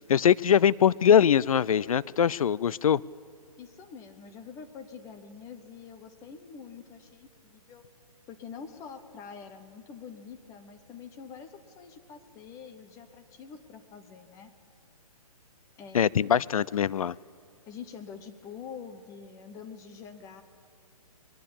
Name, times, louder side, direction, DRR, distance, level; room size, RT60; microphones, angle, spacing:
voice 1, 0.1-3.0 15.9-17.2, left 8 dB, 65° left, 22 dB, 0.5 m, -22 dB
voice 2, 3.6-7.8 8.3-14.5 15.8-16.4 17.7-20.4, left 6 dB, 15° left, 8 dB, 1.2 m, -46 dB
22.5 x 21.0 x 8.8 m, 2.4 s
hypercardioid pair, 155°, 19 cm